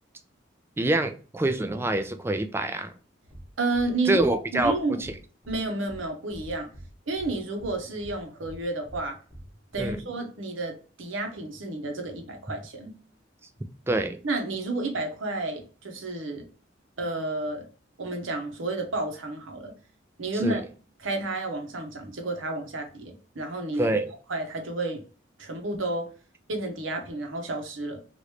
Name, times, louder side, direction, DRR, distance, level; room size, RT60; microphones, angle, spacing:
voice 1, 0.8-2.9 4.1-5.1 9.8-10.0 13.9-14.2 20.4-20.6 23.8-24.1, right 2 dB, 10° right, 8 dB, 0.3 m, -26 dB
sound 1, 3.3-3.4 3.7-3.9 4.2-4.3 4.6-4.7 5.0-5.1 5.4-5.6 5.9-6.0 6.3-6.9 7.2-7.3 7.6-7.7 8.0-8.1 8.4-8.6 8.9-9.0 9.3-9.4 9.7-10.0, right 1 dB, 5° left, 0.8 m, -44 dB
voice 2, 3.6-5.0 5.5-6.7 7.1-9.2 9.7-12.9 14.2-16.4 17.0-17.7 18.0-19.7 20.2-20.6 21.0-23.9 24.3-25.0 25.4-26.1 26.5-28.0, right 2 dB, 90° right, 4 dB, 0.9 m, -31 dB
3.0 x 2.5 x 3.1 m, 0.38 s
head